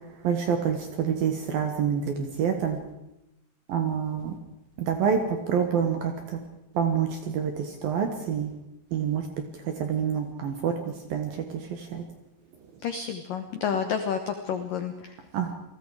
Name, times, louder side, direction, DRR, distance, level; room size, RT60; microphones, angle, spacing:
voice 1, 0.2-2.8 3.7-4.3 4.8-6.4 6.7-8.5 8.9-9.3 9.6-12.0 15.3-15.5, right 7 dB, 65° right, 5 dB, 2.4 m, -27 dB
voice 2, 12.8-15.2, left 7 dB, 85° left, 7 dB, 1.9 m, -30 dB
28.5 x 20.0 x 4.9 m, 0.92 s
omnidirectional pair, 6.0 m